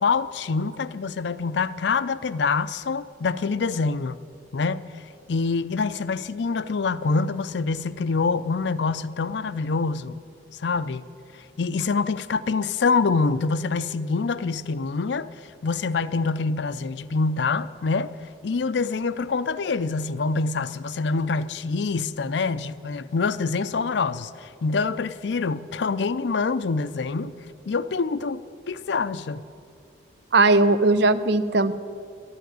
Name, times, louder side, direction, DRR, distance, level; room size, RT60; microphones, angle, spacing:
voice 1, 0.0-4.2 4.5-5.0 5.3-10.2 10.6-11.0 11.6-18.1 18.4-27.4 27.7-28.4 28.7-29.4, left 4 dB, 70° left, 0.5 m, -25 dB
voice 2, 30.3-31.7, right 2 dB, 65° right, 0.6 m, -18 dB
12.5 x 9.4 x 9.1 m
head